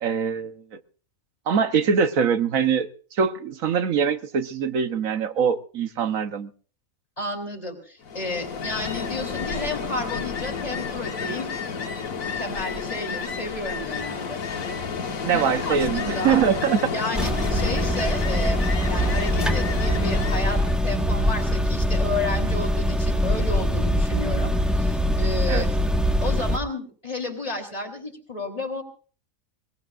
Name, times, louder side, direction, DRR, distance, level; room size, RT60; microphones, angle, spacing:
voice 1, 0.0-0.8 1.5-6.5 15.2-16.9 25.5-25.7, right 7 dB, 80° right, 9 dB, 1.4 m, -23 dB
voice 2, 7.2-11.5 12.4-14.4 15.2-16.4 16.9-18.6 18.9-25.7 26.2-28.8, left 2 dB, 25° left, 3 dB, 3.5 m, -32 dB
Ocean, 8.0-20.8, left 5 dB, 90° left, 1.7 m, -31 dB
sound 1, 17.1-26.6, equal, ahead, 1.2 m, -23 dB
21.5 x 21.0 x 2.4 m, 0.40 s
omnidirectional pair, 1.4 m